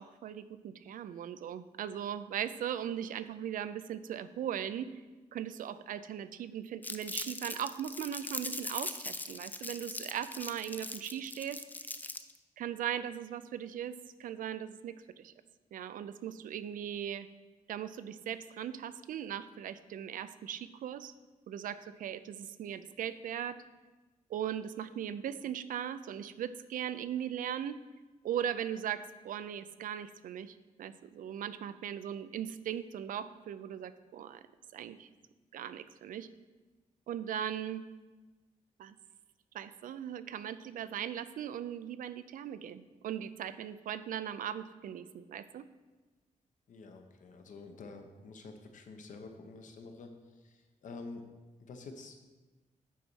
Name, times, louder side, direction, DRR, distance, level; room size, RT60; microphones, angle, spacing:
voice 1, 0.0-4.9 5.3-11.6 12.6-15.3 15.7-17.3 17.7-21.1 21.5-23.6 24.3-27.8 28.2-34.4 34.7-35.1 35.5-36.3 37.1-37.8 38.8-38.9 39.5-45.7, right 9 dB, 85° right, 13 dB, 0.4 m, -39 dB
Crumpling crinkling, 6.8-12.4, left 2 dB, 15° left, 0.3 m, -40 dB
voice 2, 46.7-51.2 51.6-52.2, left 3 dB, 70° left, 5 dB, 0.9 m, -48 dB
8.3 x 4.0 x 6.2 m, 1.2 s
wide cardioid pair, 150°, 14 cm